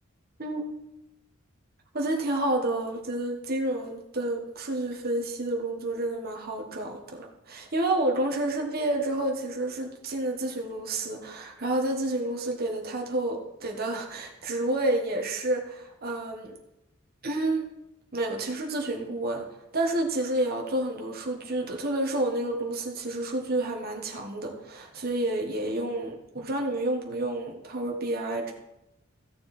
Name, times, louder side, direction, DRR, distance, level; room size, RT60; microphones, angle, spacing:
voice 1, 1.9-16.6 17.2-17.7 18.1-19.5 19.7-28.5, right 1 dB, 45° right, 1 dB, 1.4 m, -29 dB
14.0 x 6.7 x 4.3 m, 0.91 s
head